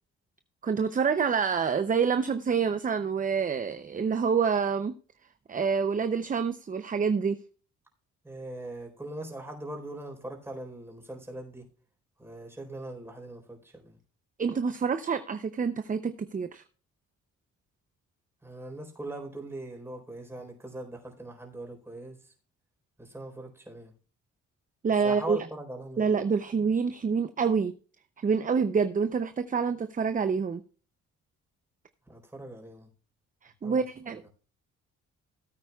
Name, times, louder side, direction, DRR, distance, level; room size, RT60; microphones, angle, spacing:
voice 1, 0.6-4.9 5.5-7.4 14.4-16.6 24.8-25.4 26.0-27.7 28.2-30.6 33.4-34.2, right 6 dB, 25° right, 11 dB, 0.6 m, -27 dB
voice 2, 8.2-11.7 12.2-14.0 18.4-22.3 23.0-23.9 25.0-26.1 32.1-32.9 33.6-34.3, right 1 dB, 10° right, 2 dB, 4.0 m, -41 dB
17.5 x 8.8 x 2.3 m, 0.38 s
cardioid pair, 90°, 30 cm